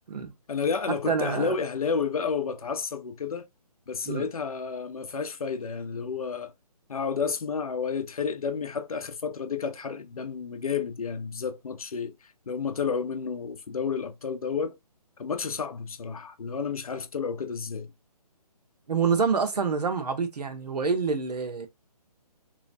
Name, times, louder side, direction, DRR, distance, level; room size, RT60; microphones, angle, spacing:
voice 1, 0.5-3.5 3.9-6.5 6.9-12.1 12.5-14.8 15.2-17.9, left 6 dB, 60° left, 0.7 m, -31 dB
voice 2, 1.1-1.5 4.0-4.2 18.9-21.7, right 5 dB, 75° right, 1.1 m, -27 dB
3.2 x 3.0 x 2.6 m
hypercardioid pair, 170°, 20 cm